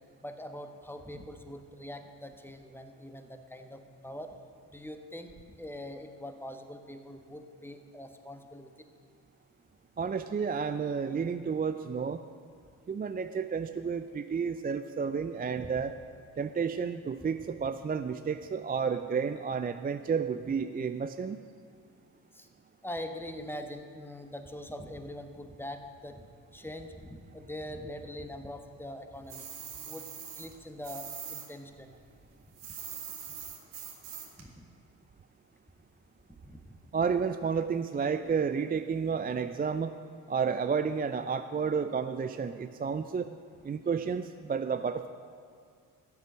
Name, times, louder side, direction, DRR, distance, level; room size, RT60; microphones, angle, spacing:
voice 1, 0.2-4.3 4.7-8.7 10.0-10.1 15.6-15.7 22.3-22.5 22.8-26.2 26.5-29.5 29.9-30.0 30.4-31.9 34.4-34.6 36.4-36.8, left 1 dB, 5° left, 6 dB, 1.4 m, -43 dB
voice 2, 10.0-12.2 12.9-15.9 16.4-21.4 36.9-40.0 40.3-43.3 43.6-45.1, right 6 dB, 20° right, 9 dB, 0.4 m, -31 dB
sound 1, 29.3-31.5 31.7-34.4, right 8 dB, 70° right, 1.7 m, -42 dB
13.5 x 8.1 x 6.3 m, 2.3 s
hypercardioid pair, 40°, 43 cm